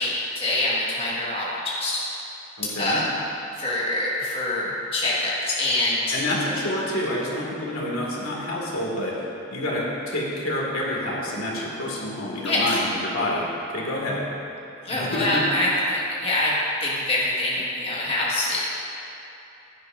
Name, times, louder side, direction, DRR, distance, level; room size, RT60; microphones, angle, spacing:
voice 1, 0.0-2.0 2.8-3.0 3.6-6.2 12.4-12.6 14.8-18.8, left 1 dB, 25° left, -7 dB, 1.6 m, -25 dB
voice 2, 2.6-3.0 6.1-9.2 9.5-14.3 14.9-15.4, left 1 dB, 80° left, -4 dB, 2.1 m, -28 dB
16.0 x 9.7 x 2.6 m, 3.0 s
head